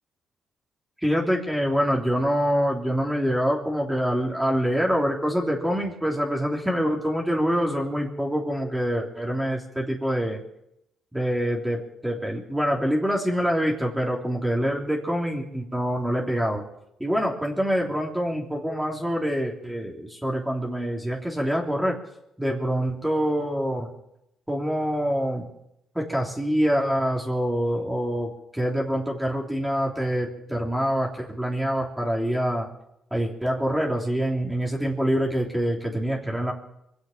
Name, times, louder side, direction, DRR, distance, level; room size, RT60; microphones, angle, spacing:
voice 1, 1.0-10.4 11.1-16.6 17.0-22.0 22.4-23.9 24.5-25.5 25.9-32.7 33.1-36.5, equal, 5° right, -2 dB, 3.3 m, -25 dB
24.0 x 8.3 x 7.3 m, 0.80 s
cardioid pair, 90°, 0 cm